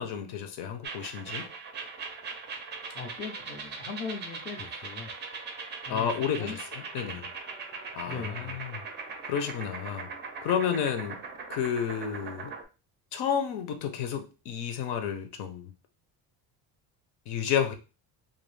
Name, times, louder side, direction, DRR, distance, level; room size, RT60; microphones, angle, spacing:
voice 1, 0.0-1.5 5.9-7.3 7.9-8.8 9.2-10.1 10.4-11.2 11.5-12.5 13.1-15.7 17.3-17.7, left 8 dB, 75° left, 6 dB, 0.7 m, -31 dB
sound 1, 0.8-12.6, right 4 dB, 30° right, 0.4 m, -40 dB
voice 2, 2.9-5.1 5.9-6.6 7.0-7.2 8.1-8.6, left 5 dB, 30° left, 3 dB, 0.4 m, -39 dB
2.6 x 2.4 x 3.2 m, 0.32 s
cardioid pair, 160°, 39 cm